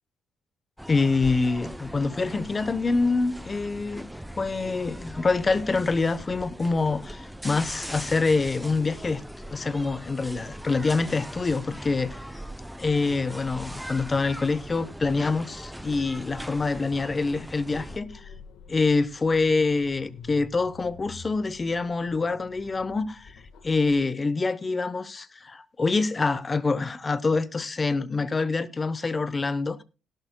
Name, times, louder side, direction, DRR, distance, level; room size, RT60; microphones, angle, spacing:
sound 1, 0.8-18.0, equal, ahead, 0.5 m, -40 dB
voice 1, 0.9-4.1 4.4-9.2 9.5-12.2 12.8-18.2 18.7-23.3 23.6-29.8, left 3 dB, 25° left, 0.8 m, -26 dB
sound 2, 17.8-24.0, left 5 dB, 80° left, 1.4 m, -48 dB
17.5 x 11.5 x 2.2 m
cardioid pair, 115°, 0 cm